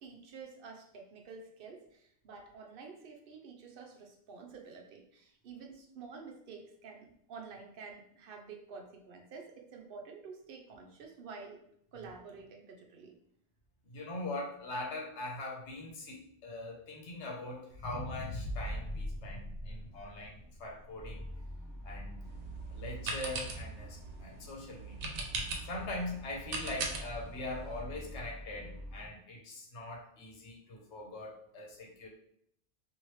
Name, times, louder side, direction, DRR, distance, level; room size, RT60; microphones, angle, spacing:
voice 1, 0.0-11.6 11.9-13.2, right 5 dB, 60° right, 2 dB, 0.7 m, -49 dB
voice 2, 13.9-21.2 21.8-22.2 22.7-25.1 25.6-32.1, left 2 dB, 80° left, 0 dB, 1.1 m, -42 dB
sound 1, 17.7-22.0 22.5-22.6, equal, 65° left, 0.7 m, -41 dB
sound 2, 21.0-29.1, left 1 dB, 10° left, 1.1 m, -47 dB
sound 3, 22.2-27.8, right 3 dB, 90° right, 0.9 m, -41 dB
3.0 x 2.7 x 3.1 m, 0.69 s
omnidirectional pair, 1.1 m